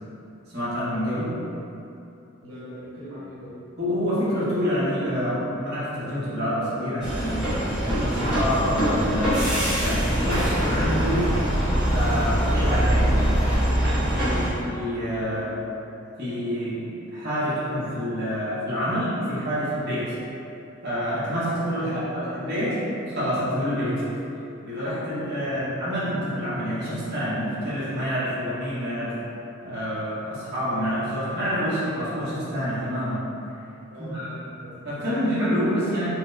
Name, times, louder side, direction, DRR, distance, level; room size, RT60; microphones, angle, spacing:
voice 1, 0.5-1.3 3.8-9.5 9.8-11.3 11.9-13.4 14.1-15.5 16.2-20.2 20.8-24.1 24.6-29.2 29.6-33.3 34.0-34.3 34.8-36.1, equal, 50° right, -11 dB, 0.9 m, -27 dB
voice 2, 2.4-3.5 15.2-15.5 21.8-22.1 25.5-25.7 33.9-34.8, equal, 85° right, -9 dB, 0.9 m, -41 dB
sound 1, 7.0-14.5, equal, 5° right, 0.9 m, -23 dB
4.3 x 2.0 x 2.5 m, 2.8 s
head